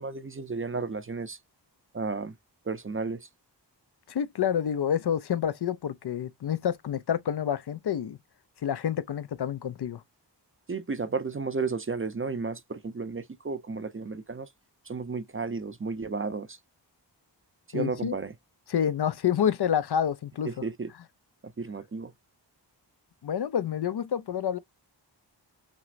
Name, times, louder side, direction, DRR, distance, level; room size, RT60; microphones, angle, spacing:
voice 1, 0.0-1.4 1.9-2.3 2.7-3.3 10.7-14.5 14.9-16.6 17.7-18.3 20.4-20.9 21.6-22.1, right 4 dB, 30° right, 0.5 m, -33 dB
voice 2, 4.1-8.2 8.6-10.0 17.7-18.1 18.7-20.5 23.2-24.6, left 9 dB, 65° left, 0.5 m, -28 dB
5.9 x 2.0 x 2.5 m
wide cardioid pair, 95°, 43 cm